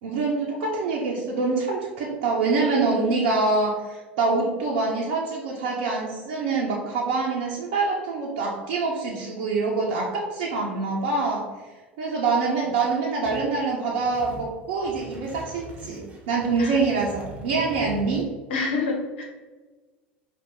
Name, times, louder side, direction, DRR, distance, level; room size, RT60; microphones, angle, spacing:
voice 1, 0.0-11.4 12.0-18.3, right 3 dB, 70° right, -3 dB, 0.7 m, -25 dB
sound 1, 13.2-13.5 13.9-14.5 14.9-18.2, equal, 20° right, 1.2 m, -42 dB
voice 2, 18.5-19.2, left 4 dB, 75° left, 1 dB, 1.1 m, -27 dB
4.8 x 2.5 x 3.8 m, 1.3 s
hypercardioid pair, 75°, 6 cm